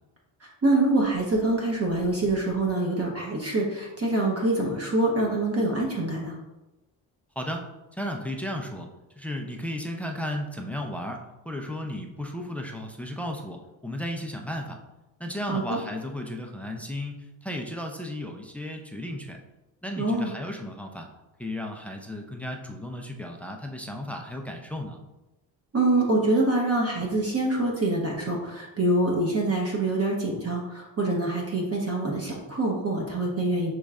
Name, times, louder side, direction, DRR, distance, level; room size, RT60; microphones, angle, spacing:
voice 1, 0.4-6.4 15.5-15.8 20.0-20.3 25.7-33.7, right 2 dB, 30° right, -2 dB, 0.9 m, -25 dB
voice 2, 7.4-8.9 9.2-14.8 15.2-19.4 19.8-21.1 21.4-25.0, left 1 dB, 5° left, 2 dB, 0.4 m, -34 dB
6.3 x 3.1 x 2.4 m, 1.0 s
cardioid pair, 100°, 45 cm